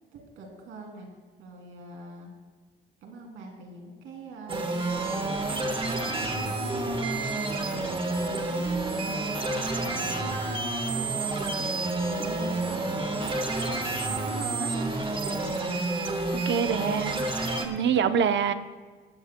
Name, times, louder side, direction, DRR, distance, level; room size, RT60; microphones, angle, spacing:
voice 1, 0.1-1.1 1.4-2.3 3.0-10.5 10.9-14.8 15.5-16.0, right 3 dB, 90° right, 1 dB, 2.8 m, -43 dB
sound 1, 4.5-17.7, right 2 dB, 25° right, 1.4 m, -29 dB
voice 2, 16.4-17.3 17.6-18.5, right 7 dB, 65° right, 10 dB, 0.8 m, -25 dB
18.5 x 13.5 x 2.2 m, 1.5 s
cardioid pair, 90°, 20 cm